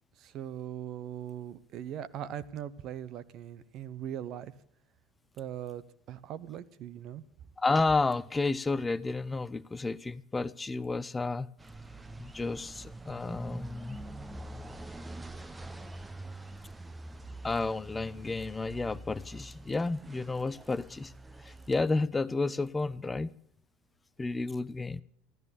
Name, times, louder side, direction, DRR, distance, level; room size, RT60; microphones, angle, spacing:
voice 1, 0.2-4.5 5.3-7.2, right 10 dB, 50° right, 0.9 m, -40 dB
voice 2, 7.6-11.5 12.2-14.0 17.4-21.1 21.4-23.4 24.2-25.0, left 3 dB, 15° left, 0.5 m, -31 dB
sound 1, 11.6-21.8, right 2 dB, 15° right, 1.0 m, -45 dB
15.0 x 13.5 x 6.8 m
hypercardioid pair, 75°, 0 cm